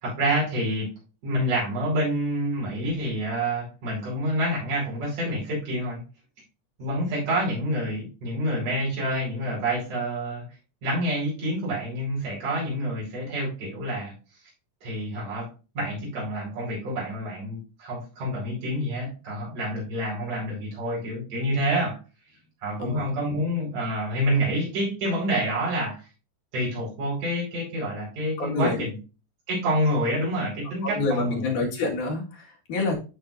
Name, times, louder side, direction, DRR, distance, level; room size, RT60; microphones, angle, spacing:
voice 1, 0.0-0.9 1.2-6.0 6.8-10.4 10.8-14.1 14.8-15.5 15.7-22.0 22.6-26.0 26.5-29.0 29.5-31.5, equal, 80° right, -5 dB, 6.5 m, -27 dB
voice 2, 28.4-28.8 30.8-33.0, left 3 dB, 80° left, 0 dB, 3.4 m, -27 dB
12.5 x 5.6 x 2.6 m, 0.32 s
omnidirectional pair, 3.5 m